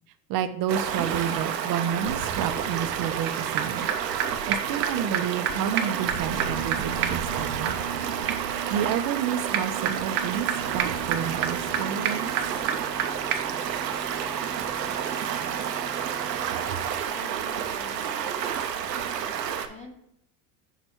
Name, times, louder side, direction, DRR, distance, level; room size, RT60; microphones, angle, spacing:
voice 1, 0.3-3.9 4.5-8.0 8.7-10.5 10.7-12.3 16.7-16.8, right 8 dB, 45° right, 11 dB, 0.7 m, -30 dB
Stream, 0.7-19.7, right 8 dB, 85° right, 0.7 m, -30 dB
sound 1, 3.3-3.4 3.6-3.7 3.9-4.0 4.2-4.3 4.5-4.6 4.8-4.9 5.1-5.2 5.5-5.6 5.8-13.0 13.3-13.4, right 9 dB, 65° right, 1.0 m, -31 dB
sound 2, 10.5-16.5, right 4 dB, 10° right, 0.6 m, -42 dB
voice 2, 17.1-18.2 19.3-20.0, left 3 dB, 15° left, 1 dB, 1.0 m, -47 dB
5.9 x 4.3 x 4.4 m, 0.74 s
hypercardioid pair, 85°, 49 cm